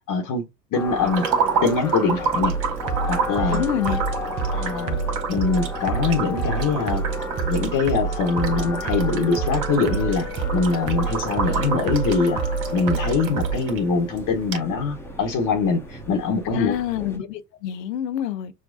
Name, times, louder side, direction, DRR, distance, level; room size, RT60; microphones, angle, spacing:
voice 1, 0.1-0.4 0.7-1.3 1.6-2.5 3.1-3.7 4.5-5.0 5.3-7.0 7.4-12.4 12.7-16.8, left 4 dB, 40° left, 1.1 m, -23 dB
sound 1, 0.7-17.2, left 2 dB, 5° left, 0.9 m, -33 dB
sound 2, 1.0-13.8 14.2-14.3 14.5-14.6, right 6 dB, 55° right, 1.6 m, -30 dB
sound 3, 2.4-13.5, right 6 dB, 40° right, 1.0 m, -28 dB
voice 2, 3.5-4.0 16.5-18.5, left 11 dB, 80° left, 0.8 m, -26 dB
6.3 x 2.2 x 2.6 m
hypercardioid pair, 80°, 49 cm